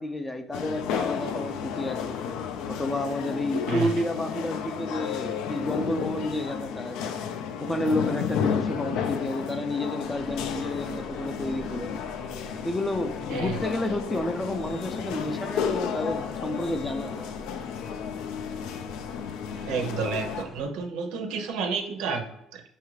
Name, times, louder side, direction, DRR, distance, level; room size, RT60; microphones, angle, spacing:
voice 1, 0.0-2.2 2.7-7.1 7.6-11.9 12.6-17.3, left 1 dB, 10° left, 7 dB, 0.3 m, -30 dB
sound 1, 0.5-20.4, left 7 dB, 90° left, 0.3 m, -32 dB
sound 2, 10.0-20.7, left 1 dB, 40° left, 0.7 m, -45 dB
voice 2, 19.6-22.6, right 5 dB, 90° right, 5 dB, 0.6 m, -31 dB
5.4 x 2.4 x 3.1 m, 0.80 s
cardioid pair, 155°, 0 cm